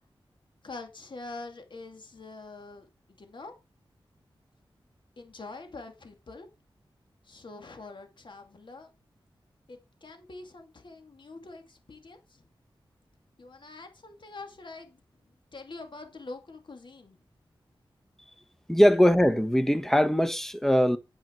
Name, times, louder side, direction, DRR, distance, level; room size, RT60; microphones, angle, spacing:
voice 1, 0.6-2.9 3.2-3.5 5.2-6.5 7.2-8.9 9.7-12.4 13.4-17.2, left 3 dB, 60° left, 2.4 m, -45 dB
voice 2, 18.7-21.0, equal, 5° left, 1.2 m, -21 dB
9.0 x 9.0 x 4.5 m
wide cardioid pair, 70°, 9 cm